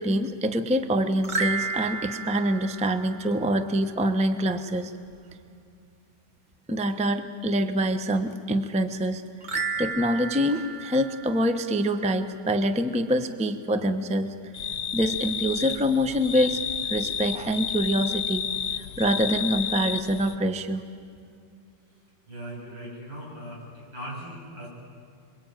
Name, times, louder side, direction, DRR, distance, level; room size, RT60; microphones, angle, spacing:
voice 1, 0.0-4.9 6.7-9.2 9.8-14.3 14.9-18.4 18.7-20.8, equal, 5° right, 8 dB, 0.7 m, -25 dB
sound 1, 1.2-3.7 9.4-12.0, right 4 dB, 30° right, 1.0 m, -33 dB
sound 2, 14.5-20.4, left 8 dB, 70° left, 1.4 m, -31 dB
voice 2, 22.3-24.7, equal, 90° right, -3 dB, 8.5 m, -39 dB
27.0 x 23.0 x 9.1 m, 2.3 s
omnidirectional pair, 2.1 m